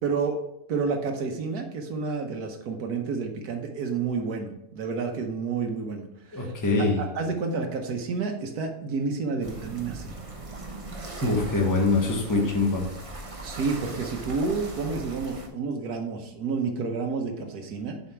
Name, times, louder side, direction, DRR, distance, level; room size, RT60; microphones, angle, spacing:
voice 1, 0.0-0.4 0.7-6.5 6.8-10.2 11.1-11.3 12.3-12.5 13.4-18.0, right 4 dB, 85° right, 3 dB, 1.5 m, -30 dB
voice 2, 6.3-7.0 11.2-12.9, left 3 dB, 15° left, 0 dB, 1.1 m, -24 dB
sound 1, 9.4-15.5, right 2 dB, 25° right, 0.9 m, -39 dB
7.0 x 5.0 x 4.5 m, 0.80 s
omnidirectional pair, 1.6 m